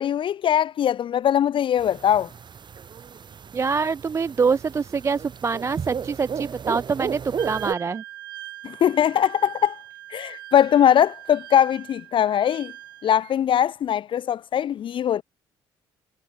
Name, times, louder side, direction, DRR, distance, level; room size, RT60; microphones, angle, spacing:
voice 1, 0.0-2.3 8.6-9.8 10.1-12.7 13.0-15.2, left 10 dB, 50° left, 0.6 m, -21 dB
sound 1, 1.8-7.7, right 7 dB, 40° right, 2.0 m, -34 dB
voice 2, 3.5-8.0, right 5 dB, 25° right, 0.3 m, -25 dB
Wind instrument woodwind instrument, 7.4-13.4, right 14 dB, 90° right, 1.3 m, -41 dB
hypercardioid pair, 55°, 11 cm